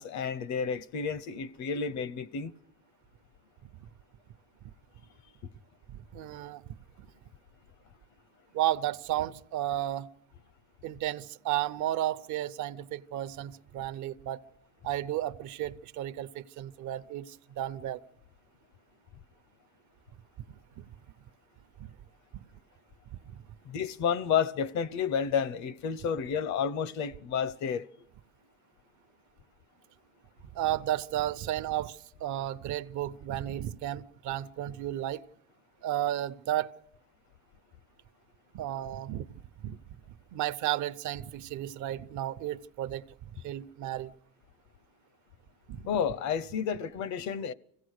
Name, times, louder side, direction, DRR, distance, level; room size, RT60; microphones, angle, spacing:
voice 1, 0.0-2.5 23.6-27.9 45.9-47.5, left 7 dB, 60° left, 0.8 m, -31 dB
voice 2, 5.9-6.6 8.5-10.1 10.8-14.4 14.8-18.0 20.8-20.9 21.8-21.9 23.1-23.2 30.5-35.2 35.8-36.7 38.5-39.2 39.6-39.8 40.3-43.0 43.3-44.1 45.7-45.8, right 13 dB, 65° right, 0.8 m, -33 dB
25.5 x 16.5 x 6.5 m
cardioid pair, 135°, 32 cm